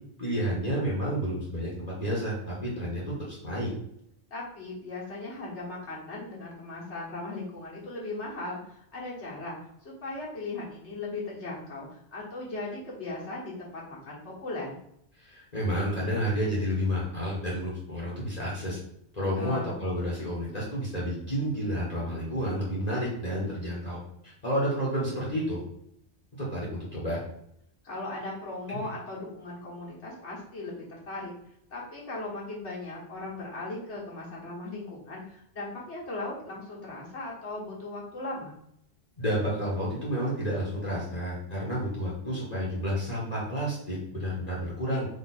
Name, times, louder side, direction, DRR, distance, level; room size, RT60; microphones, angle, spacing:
voice 1, 0.2-3.7 15.2-18.8 19.1-25.6 26.4-27.2 28.7-28.9 39.2-45.1, equal, 40° left, -5 dB, 1.2 m, -30 dB
voice 2, 4.3-14.7 19.4-19.8 27.8-31.3 31.7-38.5, left 2 dB, 75° left, -5 dB, 1.6 m, -38 dB
3.9 x 2.8 x 4.2 m, 0.73 s
omnidirectional pair, 1.2 m